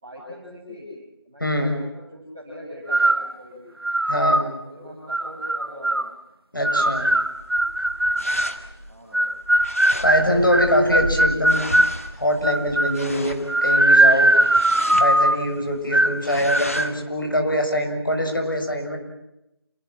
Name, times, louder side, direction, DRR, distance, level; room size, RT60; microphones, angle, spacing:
voice 1, 0.0-0.9 1.2-3.6 4.6-6.1 8.8-9.2, left 1 dB, 5° right, -11 dB, 4.8 m, -41 dB
voice 2, 1.4-1.7 4.1-4.5 6.5-7.1 10.0-11.6 12.2-14.3 15.0-19.0, equal, 55° left, 3 dB, 6.6 m, -23 dB
sound 1, 2.9-3.3 3.8-4.5 5.1-6.1 6.6-8.6 9.1-12.0 12.4-13.0 13.5-15.5 15.9-16.2 16.5-16.9, right 1 dB, 65° right, 1.4 m, -19 dB
sound 2, 6.8-17.0, equal, 35° left, 2.0 m, -35 dB
28.0 x 23.5 x 7.7 m, 0.90 s
figure-of-eight pair, 180°, 13 cm